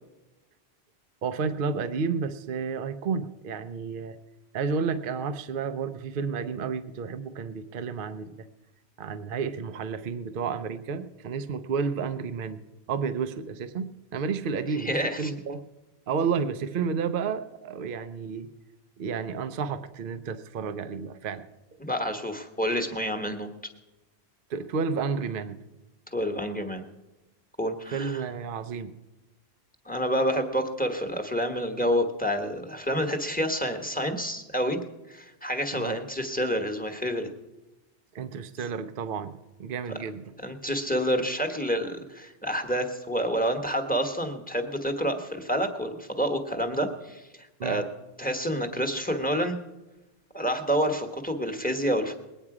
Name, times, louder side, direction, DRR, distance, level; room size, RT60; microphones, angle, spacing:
voice 1, 1.2-4.2 4.5-8.4 9.0-12.6 12.9-15.7 16.1-18.5 19.0-21.5 24.5-25.6 27.9-28.9 35.7-36.0 38.1-40.2 47.6-47.8, right 5 dB, 60° right, 10 dB, 0.8 m, -31 dB
voice 2, 14.8-15.3 21.8-23.5 26.1-26.8 27.6-28.2 29.8-34.8 35.1-37.3 40.4-47.2 47.6-47.9 48.2-49.6 50.3-52.1, equal, 10° left, 5 dB, 1.1 m, -28 dB
20.5 x 9.2 x 4.8 m, 1.0 s
omnidirectional pair, 1.1 m